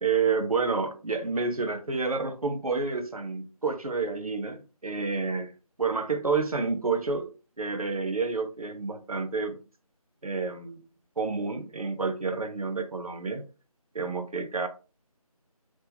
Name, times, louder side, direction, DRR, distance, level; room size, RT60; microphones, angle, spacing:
voice 1, 0.0-5.5 5.8-7.3 7.6-9.6 10.2-10.8 11.2-13.4 13.9-14.7, right 4 dB, 70° right, 0.9 m, -29 dB
3.5 x 3.2 x 2.8 m
figure-of-eight pair, 180°, 19 cm